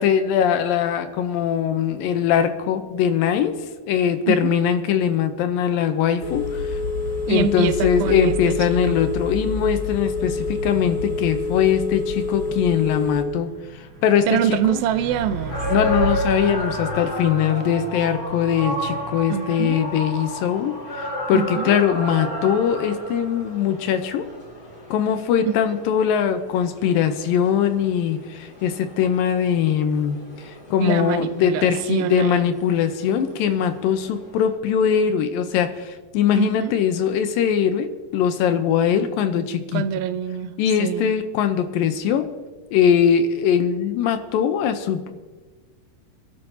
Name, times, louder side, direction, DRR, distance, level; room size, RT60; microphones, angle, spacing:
voice 1, 0.0-3.6 3.9-6.8 7.3-13.5 13.8-14.4 14.7-14.8 15.7-24.3 24.9-30.2 30.4-39.8 40.6-42.3 42.7-45.1, left 8 dB, 80° left, 9 dB, 2.4 m, -21 dB
voice 2, 4.3-4.6 7.3-9.0 14.3-15.6 19.3-19.9 21.3-21.8 25.5-25.6 30.8-32.5 36.3-36.8 39.7-41.1, right 9 dB, 85° right, 11 dB, 2.5 m, -25 dB
Telephone, 6.2-13.2, left 3 dB, 45° left, 1.6 m, -27 dB
Truck, 12.5-24.8, right 3 dB, 30° right, 5.8 m, -36 dB
sound 1, 15.5-34.5, left 1 dB, 25° left, 2.9 m, -33 dB
25.5 x 12.0 x 2.8 m, 1.3 s
omnidirectional pair, 4.2 m